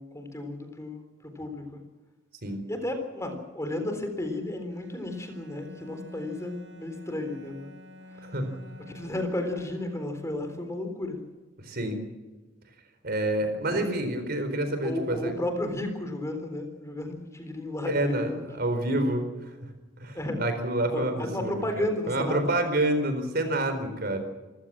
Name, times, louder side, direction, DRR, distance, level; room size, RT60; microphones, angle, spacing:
voice 1, 0.0-1.8 2.7-7.7 8.1-8.2 8.9-11.2 13.7-13.8 14.8-18.6 20.1-20.4 20.9-22.4, left 1 dB, 15° left, 6 dB, 3.8 m, -33 dB
Bowed string instrument, 4.7-10.5, left 1 dB, 75° right, 4.3 m, -49 dB
voice 2, 11.6-12.0 13.0-15.3 17.9-19.5 20.0-24.2, right 1 dB, 55° right, 8 dB, 4.3 m, -28 dB
28.0 x 15.5 x 7.5 m, 1.2 s
head